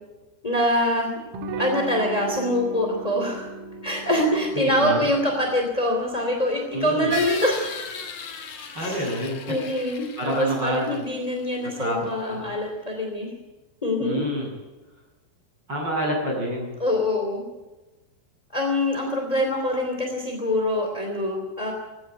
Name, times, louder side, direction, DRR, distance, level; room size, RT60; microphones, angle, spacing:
voice 1, 0.4-1.1 1.6-3.5 3.8-7.7 8.8-9.1 9.5-13.3 13.8-14.2 16.8-17.4 18.5-21.7, left 1 dB, 15° left, 2 dB, 1.4 m, -24 dB
Electric guitar / Strum, 1.3-6.7, right 3 dB, 85° right, 4.5 m, -37 dB
voice 2, 4.5-5.1 6.7-7.1 8.7-9.4 10.2-10.9 11.8-12.4 14.0-14.5 15.7-16.7, equal, 20° right, -1 dB, 8.3 m, -27 dB
sound 1, 7.1-11.8, left 6 dB, 50° left, 2.5 m, -37 dB
18.0 x 17.0 x 9.0 m, 1.1 s
omnidirectional pair, 6.0 m